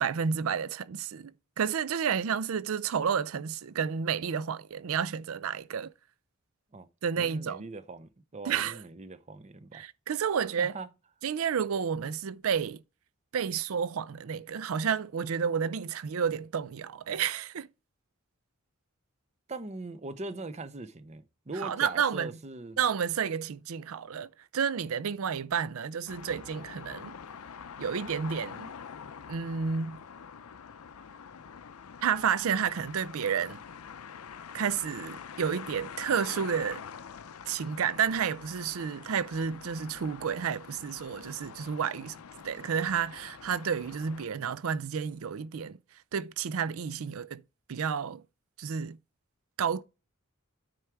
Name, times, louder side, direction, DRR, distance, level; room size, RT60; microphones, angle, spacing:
voice 1, 0.0-5.9 7.0-7.6 8.5-8.8 9.7-10.7 11.2-12.8 13.3-17.7 21.6-22.3 22.8-27.1 27.8-28.7 29.3-30.0 32.0-33.6 34.5-36.8 37.5-45.8 46.1-47.4 47.7-48.2 48.6-49.0 49.6-49.8, right 7 dB, 70° right, 0.4 m, -31 dB
voice 2, 7.2-9.8 10.6-10.9 19.5-22.8, right 3 dB, 30° right, 0.7 m, -41 dB
sound 1, 26.1-44.3, left 7 dB, 85° left, 0.6 m, -46 dB
9.5 x 4.7 x 4.6 m
head